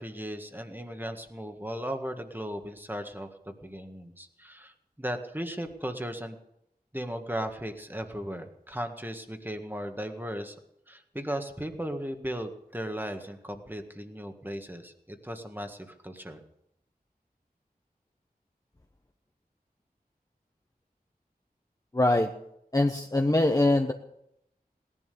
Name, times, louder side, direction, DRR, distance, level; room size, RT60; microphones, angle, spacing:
voice 1, 0.0-6.4 6.9-10.6 10.9-16.4, equal, 10° right, 5 dB, 1.8 m, -36 dB
voice 2, 21.9-22.3 22.7-23.9, left 2 dB, 20° left, 4 dB, 1.0 m, -23 dB
18.0 x 11.0 x 6.9 m, 0.78 s
wide cardioid pair, 60°, 16 cm